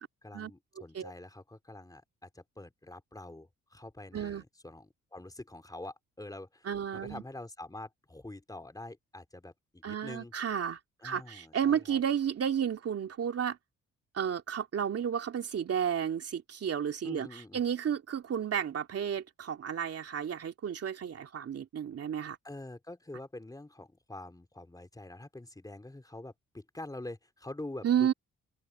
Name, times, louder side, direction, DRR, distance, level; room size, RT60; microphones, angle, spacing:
voice 1, 0.2-10.3 11.0-12.0 17.0-17.6 22.4-28.1, left 2 dB, 10° left, 3.4 m, -46 dB
voice 2, 4.1-4.4 6.6-7.2 9.8-13.6 14.1-22.4 27.8-28.1, right 8 dB, 50° right, 2.6 m, -32 dB
open air
cardioid pair, 90°, 30 cm